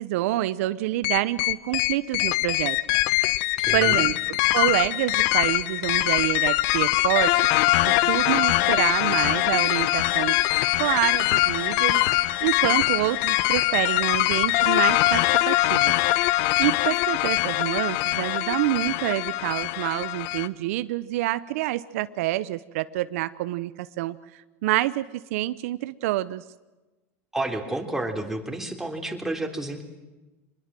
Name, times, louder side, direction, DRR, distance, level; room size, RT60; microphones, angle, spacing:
voice 1, 0.0-2.8 3.7-10.4 10.8-15.9 16.6-25.1 25.3-26.4, right 16 dB, 75° right, 14 dB, 0.7 m, -27 dB
sound 1, 1.0-20.5, left 17 dB, 70° left, 0.9 m, -23 dB
voice 2, 3.6-4.1 27.3-29.8, right 2 dB, 5° right, 3 dB, 3.4 m, -30 dB
24.5 x 21.0 x 7.5 m, 1.1 s
supercardioid pair, 110°, 8 cm